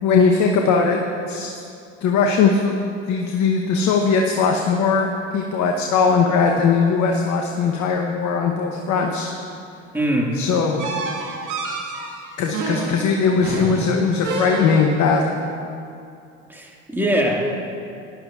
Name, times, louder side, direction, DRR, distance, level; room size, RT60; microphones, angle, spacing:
voice 1, 0.0-1.0 1.3-1.5 2.0-2.7 3.1-9.3 10.3-10.8 12.4-15.3, left 5 dB, 50° left, 2 dB, 1.0 m, -19 dB
voice 2, 9.9-10.3 16.5-17.5, right 1 dB, 5° right, -1 dB, 2.0 m, -22 dB
sound 1, 10.8-15.1, right 3 dB, 55° right, 1.8 m, -29 dB
16.0 x 11.0 x 2.5 m, 2.6 s
hypercardioid pair, 65°, 36 cm